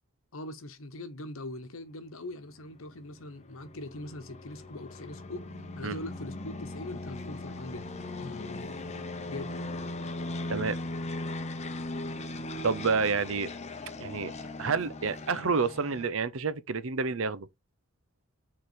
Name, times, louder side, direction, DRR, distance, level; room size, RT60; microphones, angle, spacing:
voice 1, 0.3-5.5 5.7-7.9 8.2-8.8 9.3-9.6, left 1 dB, 75° left, 1.0 m, -41 dB
sound 1, 2.8-16.1, left 2 dB, 30° left, 0.7 m, -39 dB
sound 2, 4.5-10.9, equal, 15° left, 1.1 m, -49 dB
voice 2, 12.6-13.5 14.0-14.3 14.6-17.5, right 4 dB, 70° right, 0.7 m, -29 dB
6.7 x 3.8 x 4.7 m
head